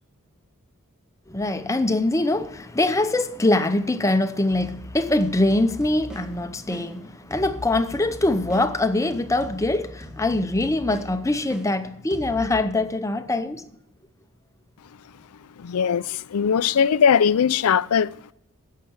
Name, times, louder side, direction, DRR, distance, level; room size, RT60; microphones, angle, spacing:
voice 1, 1.3-13.7, left 2 dB, 15° left, 0.6 m, -23 dB
sound 1, 4.5-12.7, equal, 5° right, 1.3 m, -40 dB
voice 2, 15.6-18.3, left 7 dB, 85° left, 0.4 m, -20 dB
16.5 x 6.6 x 7.1 m
head